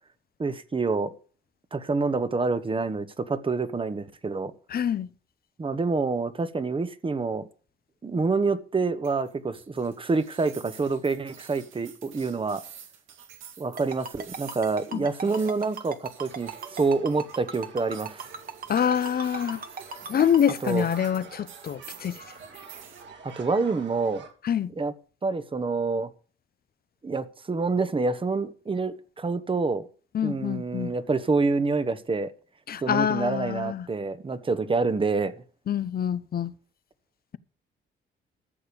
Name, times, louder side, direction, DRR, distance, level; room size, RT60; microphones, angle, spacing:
voice 1, 0.4-1.1 1.7-4.5 5.6-7.5 8.0-12.6 13.6-18.3 20.6-20.9 23.2-24.2 24.8-24.9 25.2-26.1 27.0-29.9 30.2-32.3 32.8-35.3, right 4 dB, 25° right, 1.2 m, -27 dB
voice 2, 4.7-5.1 14.9-15.1 18.7-19.6 20.1-22.2 24.4-24.7 30.1-30.9 32.7-33.9 35.7-36.5, left 9 dB, 50° left, 0.8 m, -26 dB
sound 1, 9.0-23.0, right 8 dB, 90° right, 2.3 m, -49 dB
Ringtone, 13.8-20.5, right 5 dB, 45° right, 1.7 m, -36 dB
sound 2, 16.1-24.3, right 5 dB, 65° right, 3.2 m, -47 dB
13.5 x 6.7 x 6.9 m
cardioid pair, 90°, 20 cm